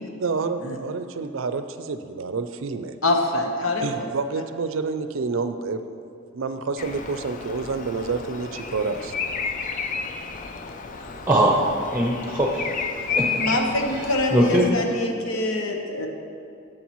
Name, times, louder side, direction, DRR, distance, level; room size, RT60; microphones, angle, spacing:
voice 1, 0.2-3.0 3.8-5.8 6.3-9.1, right 4 dB, 75° right, 10 dB, 0.5 m, -28 dB
voice 2, 3.0-4.1 13.1-16.1, left 2 dB, 90° left, 2 dB, 1.0 m, -25 dB
Bird vocalization bird call bird song, 6.8-14.7, left 5 dB, 40° left, 0.4 m, -31 dB
voice 3, 11.3-11.6 11.9-12.7 13.0-13.4 13.9-14.7, right 1 dB, 10° right, -2 dB, 0.7 m, -21 dB
11.0 x 7.6 x 3.1 m, 2.5 s
head